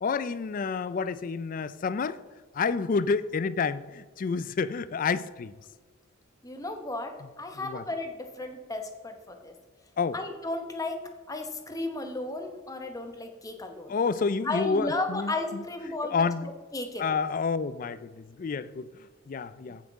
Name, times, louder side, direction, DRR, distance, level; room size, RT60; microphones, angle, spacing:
voice 1, 0.0-2.2 2.5-5.5 7.6-7.8 10.0-10.2 13.9-15.6 16.0-16.5 17.0-18.9 19.3-19.8, left 5 dB, 40° left, 0.3 m, -29 dB
voice 2, 6.4-9.5 10.1-13.9 14.4-16.3 16.7-17.2, left 2 dB, 15° left, 0.9 m, -34 dB
15.0 x 5.8 x 3.6 m
head